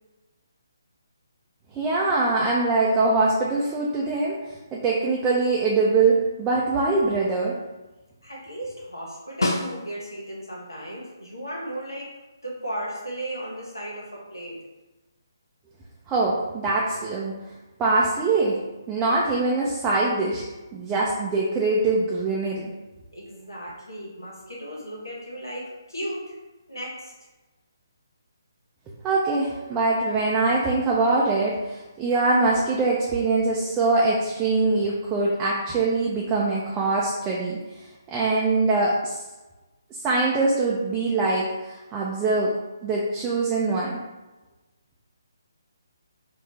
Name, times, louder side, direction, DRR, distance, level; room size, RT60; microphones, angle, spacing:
voice 1, 1.7-4.4 4.7-7.5 16.1-17.3 17.8-18.6 18.9-20.4 20.7-22.7 29.0-37.6 38.1-39.2 39.9-42.5 42.8-44.0, right 3 dB, 15° right, -5 dB, 0.5 m, -23 dB
voice 2, 8.2-12.1 12.4-14.6 23.1-26.3 26.7-27.1, right 1 dB, 90° left, -4 dB, 1.4 m, -35 dB
Snare drum, 9.4-10.3 14.8-14.9, left 2 dB, 70° left, 0.7 m, -28 dB
4.7 x 2.5 x 3.2 m, 1.1 s
figure-of-eight pair, 145°, 2 cm